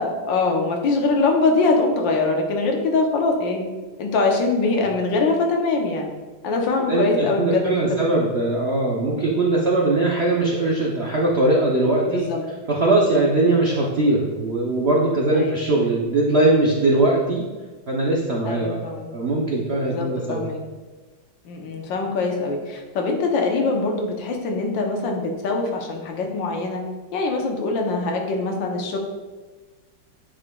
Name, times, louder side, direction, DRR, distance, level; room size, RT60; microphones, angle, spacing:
voice 1, 0.0-3.7 4.0-6.1 6.4-8.3 9.4-9.7 12.1-12.4 13.4-13.6 15.3-15.7 18.4-19.1 19.7-20.6 21.4-26.8 27.1-29.0, left 3 dB, 80° left, 2 dB, 1.6 m, -23 dB
voice 2, 6.9-12.2 12.7-17.4 17.9-18.8 19.1-20.5, right 2 dB, 65° right, -3 dB, 0.6 m, -20 dB
8.7 x 4.9 x 2.3 m, 1.3 s
omnidirectional pair, 2.0 m